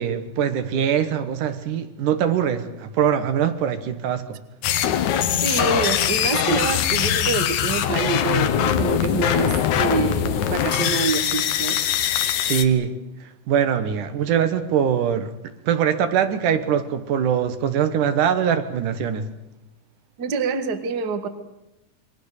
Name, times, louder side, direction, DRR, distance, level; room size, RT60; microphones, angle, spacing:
voice 1, 0.0-4.4 12.4-12.9 13.2-15.3 15.6-19.3, right 8 dB, 75° right, 2.9 m, -22 dB
sound 1, 4.6-12.6, left 10 dB, 70° left, 2.5 m, -22 dB
voice 2, 5.4-11.8 20.2-21.3, right 5 dB, 40° right, 1.8 m, -26 dB
28.0 x 22.5 x 6.7 m
omnidirectional pair, 3.7 m